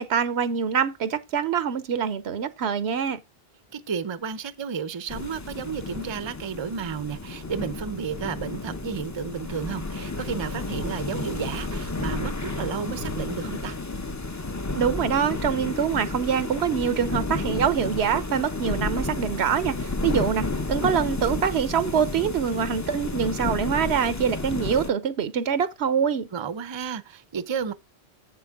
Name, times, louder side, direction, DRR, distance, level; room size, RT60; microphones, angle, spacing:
voice 1, 0.0-3.2 14.7-26.3, right 7 dB, 80° right, 1.1 m, -25 dB
voice 2, 3.7-13.7 26.3-27.7, right 6 dB, 30° right, 0.6 m, -32 dB
sound 1, 5.1-24.9, left 3 dB, 20° left, 0.6 m, -31 dB
7.6 x 7.5 x 3.6 m
omnidirectional pair, 1.1 m